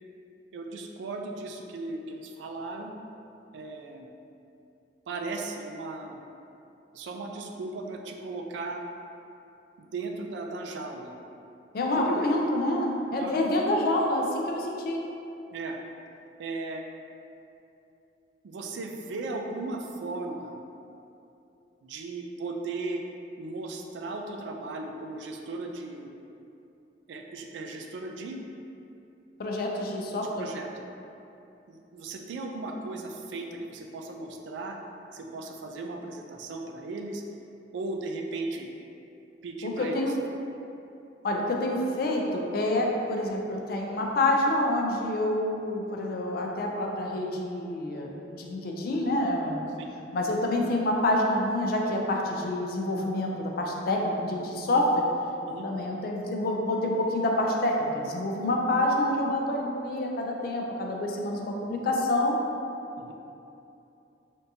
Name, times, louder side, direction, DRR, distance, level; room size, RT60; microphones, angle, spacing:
voice 1, 0.5-2.9 3.5-4.1 5.1-6.2 6.9-8.8 9.8-11.1 12.0-12.3 13.2-13.3 15.5-15.8 16.4-16.8 18.4-20.6 21.8-23.0 23.4-26.1 27.1-28.4 30.4-30.8 31.7-34.8 35.1-37.2 37.7-38.7 39.4-40.1 49.8-49.9 55.5-55.7 63.0-63.1, right 3 dB, 85° right, 2 dB, 0.3 m, -36 dB
voice 2, 11.7-15.0 29.4-30.5 39.6-40.1 41.2-49.6 50.1-55.0 55.6-62.4, left 1 dB, 55° left, 0 dB, 0.4 m, -27 dB
3.5 x 2.7 x 2.6 m, 2.8 s
head